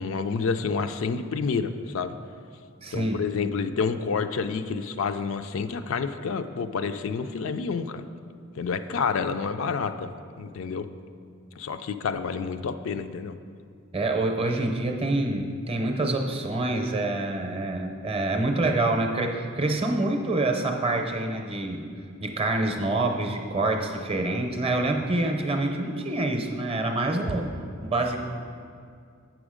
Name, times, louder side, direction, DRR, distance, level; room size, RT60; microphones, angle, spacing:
voice 1, 0.0-2.1 2.9-8.0 8.6-10.1 10.4-10.9 11.6-13.3, left 5 dB, 70° left, 9 dB, 0.4 m, -29 dB
voice 2, 2.8-3.2 13.9-21.8 22.2-27.5 27.8-28.2, right 2 dB, 25° right, 4 dB, 0.6 m, -26 dB
7.8 x 6.2 x 5.0 m, 2.3 s
head